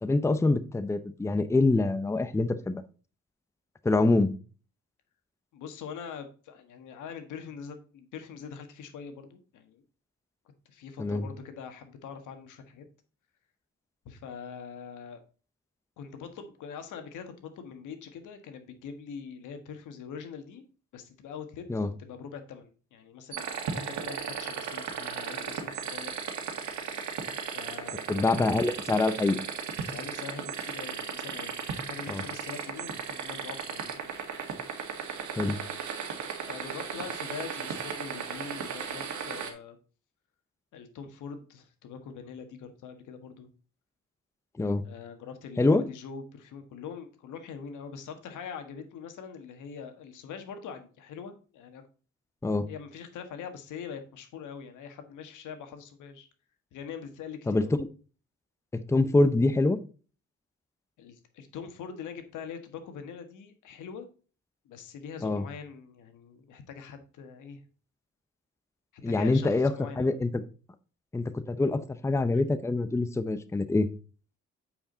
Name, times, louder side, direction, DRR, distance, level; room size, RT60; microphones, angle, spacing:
voice 1, 0.0-2.8 3.8-4.3 11.0-11.3 21.7-21.9 28.1-29.4 32.1-32.2 35.4-35.6 44.6-44.8 45.6-45.8 52.4-52.7 57.5-57.6 58.7-59.8 65.2-65.4 69.0-70.4 71.1-73.9, left 2 dB, 10° left, 12 dB, 0.6 m, -25 dB
voice 2, 5.5-9.8 10.6-12.8 14.0-15.2 16.0-20.6 20.9-26.2 27.5-28.0 29.9-34.1 36.4-39.8 40.7-43.5 44.8-51.8 52.7-56.3 56.7-57.7 61.0-64.1 64.6-67.6 68.9-70.2, left 6 dB, 80° left, 8 dB, 1.5 m, -43 dB
sound 1, 23.3-39.5, right 6 dB, 70° right, 1.8 m, -36 dB
8.8 x 4.9 x 3.8 m, 0.37 s
cardioid pair, 90°, 30 cm